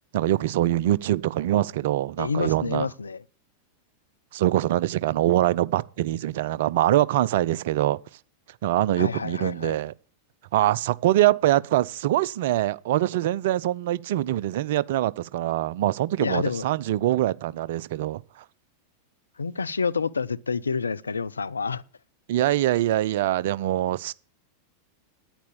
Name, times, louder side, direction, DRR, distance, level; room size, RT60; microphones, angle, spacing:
voice 1, 0.1-2.9 4.3-8.0 8.6-9.9 10.5-18.2 22.3-24.1, right 14 dB, 55° right, 0.5 m, -24 dB
voice 2, 2.2-3.2 9.0-9.8 16.2-16.6 19.4-21.8, left 5 dB, 75° left, 0.5 m, -28 dB
10.5 x 9.7 x 7.0 m
figure-of-eight pair, 90°, 0 cm